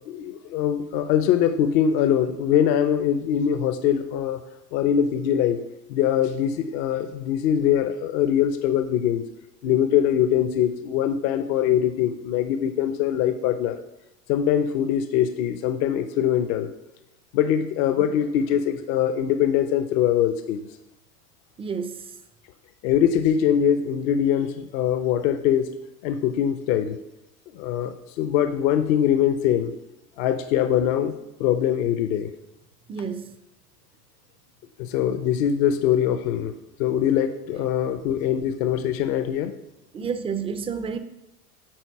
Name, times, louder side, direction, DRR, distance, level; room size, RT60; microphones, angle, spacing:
voice 1, 0.1-4.4 4.7-5.6 5.9-9.2 9.6-13.8 14.3-16.7 17.3-20.6 22.8-25.7 26.0-27.0 27.5-29.7 30.2-31.1 31.4-32.3 34.8-36.5 36.8-39.5, left 9 dB, 60° left, 0.8 m, -22 dB
voice 2, 21.6-22.1 32.9-33.4 37.5-37.7 39.9-41.0, right 6 dB, 15° right, 0.4 m, -30 dB
9.0 x 4.2 x 4.6 m
hypercardioid pair, 105°, 48 cm